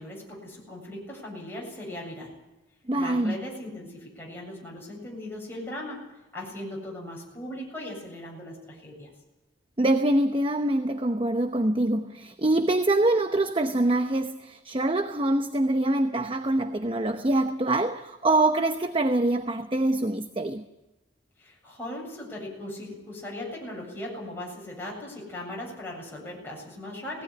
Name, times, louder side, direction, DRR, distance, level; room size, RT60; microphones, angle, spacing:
voice 1, 0.0-2.4 3.0-9.1 21.4-27.2, left 1 dB, 10° left, 7.5 m, -38 dB
voice 2, 2.9-3.4 9.8-20.6, right 2 dB, 30° right, 0.8 m, -24 dB
19.0 x 17.0 x 9.5 m
head